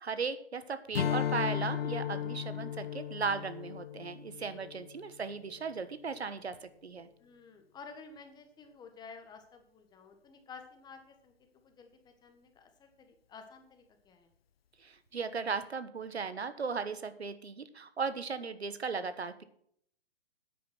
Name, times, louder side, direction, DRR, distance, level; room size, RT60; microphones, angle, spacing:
voice 1, 0.0-7.1 14.8-19.4, right 5 dB, 90° right, 12 dB, 1.3 m, -37 dB
Strum, 0.9-5.6, left 9 dB, 70° left, 1.0 m, -36 dB
voice 2, 4.5-4.8 7.2-11.3 11.6-14.3, left 5 dB, 15° left, 5 dB, 1.5 m, -52 dB
9.3 x 9.2 x 6.0 m, 0.65 s
hypercardioid pair, 135°, 31 cm